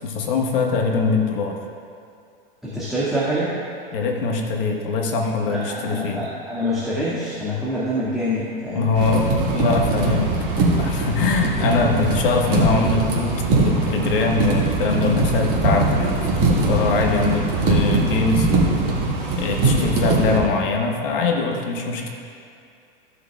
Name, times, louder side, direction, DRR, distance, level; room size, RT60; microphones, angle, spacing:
voice 1, 0.0-1.6 3.9-6.2 8.7-10.3 10.8-18.5 19.4-22.1, left 4 dB, 65° left, 1 dB, 1.4 m, -22 dB
voice 2, 2.6-3.5 5.5-8.9 11.2-11.4, equal, ahead, -10 dB, 1.9 m, -26 dB
sound 1, 8.9-20.4, right 2 dB, 65° right, 2.1 m, -21 dB
15.0 x 6.6 x 2.4 m, 2.4 s
hypercardioid pair, 90°, 29 cm